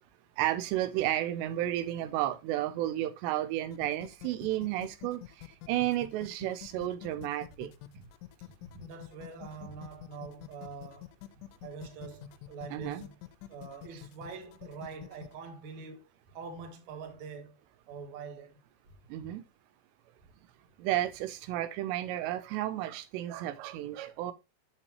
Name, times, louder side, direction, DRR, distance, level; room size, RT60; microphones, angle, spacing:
voice 1, 0.4-7.7 12.7-13.0 19.1-19.4 20.8-24.3, right 13 dB, 85° right, 2.8 m, -32 dB
sound 1, 3.7-15.4, left 16 dB, 90° left, 2.9 m, -47 dB
voice 2, 8.4-13.2 13.5-16.1 16.3-17.6 17.9-18.6, right 5 dB, 55° right, 2.4 m, -45 dB
7.5 x 6.8 x 2.9 m
omnidirectional pair, 4.9 m